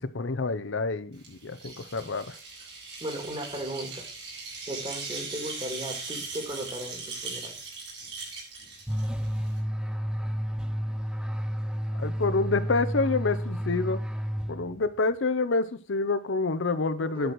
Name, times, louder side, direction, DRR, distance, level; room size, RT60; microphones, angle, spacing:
voice 1, 0.0-2.4 11.9-14.0 14.5-17.3, left 3 dB, 85° left, 12 dB, 0.8 m, -28 dB
sound 1, 1.2-9.6, right 4 dB, 65° right, 4.9 m, -39 dB
voice 2, 3.0-4.1 4.7-7.6 17.0-17.3, right 1 dB, 30° right, 4 dB, 2.1 m, -36 dB
sound 2, 8.9-15.0, equal, 5° right, 0.5 m, -31 dB
10.5 x 4.8 x 6.1 m, 0.39 s
head